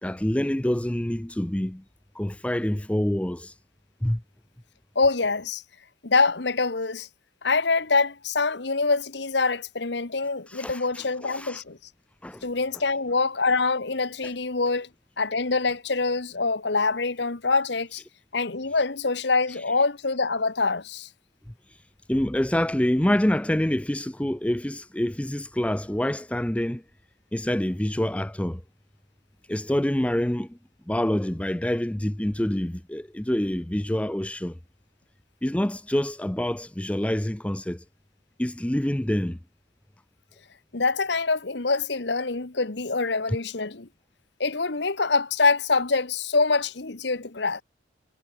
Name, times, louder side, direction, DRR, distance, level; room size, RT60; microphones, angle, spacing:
voice 1, 0.0-1.8 2.1-3.5 4.0-4.2 10.5-11.6 12.2-12.5 14.2-14.3 22.1-26.8 27.3-28.6 29.5-30.6 30.9-34.6 35.4-37.8 38.4-39.4, left 1 dB, 5° left, 0.5 m, -26 dB
voice 2, 4.9-5.6 6.0-7.1 7.4-11.8 12.4-14.9 15.2-18.0 18.3-21.1 40.7-43.9 44.4-47.6, left 4 dB, 60° left, 1.2 m, -25 dB
head